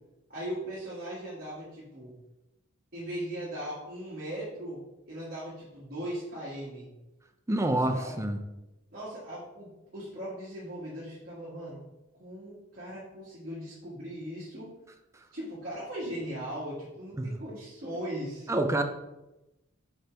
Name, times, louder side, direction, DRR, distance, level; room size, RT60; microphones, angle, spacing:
voice 1, 0.3-2.1 2.9-4.8 5.1-6.9 7.6-8.2 8.9-11.8 12.1-14.7 15.3-18.5, equal, 45° right, -8 dB, 1.7 m, -39 dB
voice 2, 7.5-8.4 17.2-17.4 18.5-18.8, right 1 dB, 15° right, 6 dB, 0.5 m, -27 dB
5.2 x 4.5 x 4.4 m, 0.97 s
head